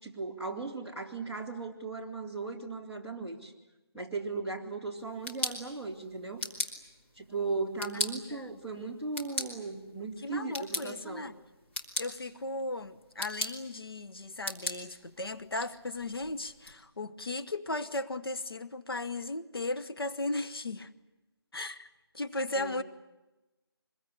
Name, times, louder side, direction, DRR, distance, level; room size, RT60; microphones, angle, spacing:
voice 1, 0.0-3.5 3.9-6.4 7.1-11.3 22.5-22.8, right 3 dB, 5° left, 2.2 m, -37 dB
sound 1, 5.0-16.7, left 1 dB, 25° left, 3.2 m, -40 dB
voice 2, 10.2-11.3 12.0-20.9 21.5-21.9 22.1-22.8, left 2 dB, 65° left, 1.4 m, -36 dB
25.5 x 22.0 x 9.9 m
figure-of-eight pair, 170°, 14 cm